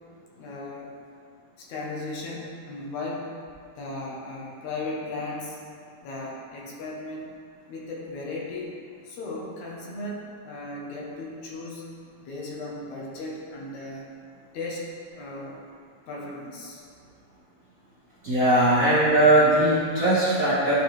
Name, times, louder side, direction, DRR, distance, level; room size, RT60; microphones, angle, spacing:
voice 1, 0.4-0.9 1.6-3.3 3.8-5.6 6.0-7.3 7.7-8.8 9.0-11.8 12.2-14.1 14.5-15.6 16.1-16.8, left 2 dB, 70° left, -3 dB, 2.1 m, -36 dB
voice 2, 18.2-20.7, right 1 dB, 45° right, -10 dB, 1.1 m, -19 dB
11.0 x 4.4 x 3.2 m, 2.2 s
omnidirectional pair, 3.8 m